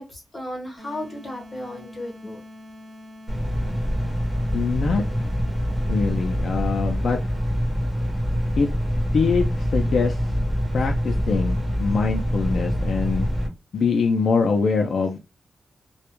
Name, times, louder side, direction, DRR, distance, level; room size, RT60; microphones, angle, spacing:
voice 1, 0.0-2.4, left 1 dB, 30° left, 1.1 m, -35 dB
sound 1, 0.8-6.7, left 1 dB, 50° right, 1.1 m, -44 dB
sound 2, 3.3-13.5, equal, 15° right, 1.0 m, -25 dB
voice 2, 4.5-5.0 5.9-7.2 8.6-10.2 10.7-13.3 13.7-15.2, left 5 dB, 80° left, 0.4 m, -23 dB
2.2 x 2.1 x 2.9 m
wide cardioid pair, 145°, 0 cm